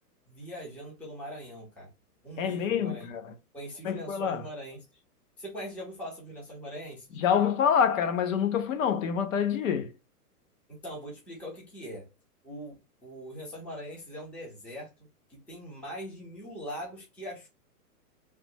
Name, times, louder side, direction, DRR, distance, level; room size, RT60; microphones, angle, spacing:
voice 1, 0.3-1.9 2.2-3.1 3.5-5.0 5.4-7.2 10.7-12.1 12.4-14.9 15.3-17.5, equal, 5° left, 0.5 m, -41 dB
voice 2, 2.4-3.3 3.8-4.4 7.2-9.9, left 7 dB, 55° left, 0.7 m, -26 dB
3.2 x 2.1 x 2.9 m
hypercardioid pair, 145°, 48 cm